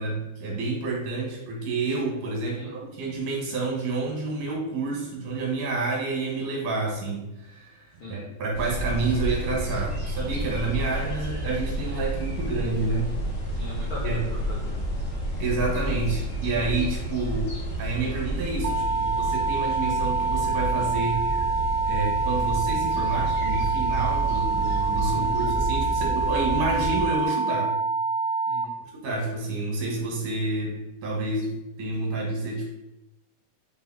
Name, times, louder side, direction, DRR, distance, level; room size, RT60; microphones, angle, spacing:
voice 1, 0.0-13.1 14.0-14.3 15.4-21.2 21.8-27.7 28.9-32.7, right 3 dB, 65° right, -1 dB, 2.6 m, -29 dB
sound 1, 8.5-27.0, right 1 dB, 50° left, 1.4 m, -30 dB
voice 2, 13.5-14.8 25.1-25.5 28.5-28.8, left 2 dB, 75° left, -6 dB, 1.1 m, -40 dB
sound 2, 18.6-28.7, right 5 dB, 90° right, 1.7 m, -26 dB
6.0 x 3.4 x 4.7 m, 0.91 s
omnidirectional pair, 4.1 m